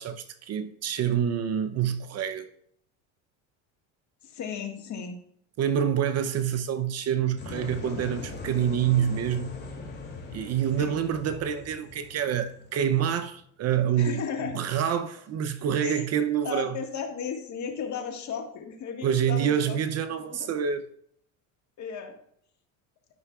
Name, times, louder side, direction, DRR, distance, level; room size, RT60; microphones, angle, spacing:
voice 1, 0.0-2.5 5.6-9.5 10.3-14.2 14.5-16.8 19.0-20.9, right 9 dB, 40° right, 0.6 m, -27 dB
voice 2, 4.2-5.2 10.8-11.0 14.0-14.6 15.8-16.0 16.4-19.8 20.4-20.5 21.8-22.1, left 7 dB, 45° left, 1.7 m, -35 dB
sound 1, 7.4-13.2, left 4 dB, 25° left, 2.6 m, -40 dB
13.5 x 5.6 x 2.4 m
supercardioid pair, 105°, 40 cm